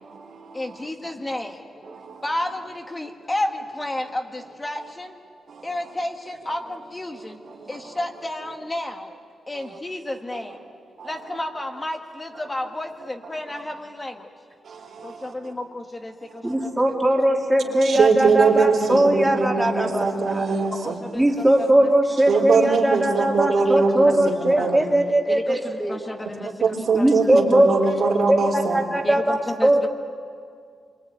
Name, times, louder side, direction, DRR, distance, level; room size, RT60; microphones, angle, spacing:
voice 1, 0.5-1.9 2.2-5.2 5.6-7.4 7.7-9.2 9.5-10.6 11.0-14.3 15.0-16.7 17.6-17.8 18.2-18.4 20.8-21.9 22.3-22.4 23.6-23.7 24.6-24.7 25.3-27.2 29.0-29.9, left 1 dB, 20° left, 3 dB, 1.6 m, -32 dB
voice 2, 16.4-20.6 21.1-26.0 26.9-27.7 28.3-29.9, right 1 dB, 10° right, 0 dB, 2.7 m, -20 dB
voice 3, 17.8-21.0 22.3-24.9 26.6-28.8, right 4 dB, 65° right, 1 dB, 3.9 m, -21 dB
26.5 x 24.0 x 9.4 m, 2.2 s
wide cardioid pair, 125°, 0 cm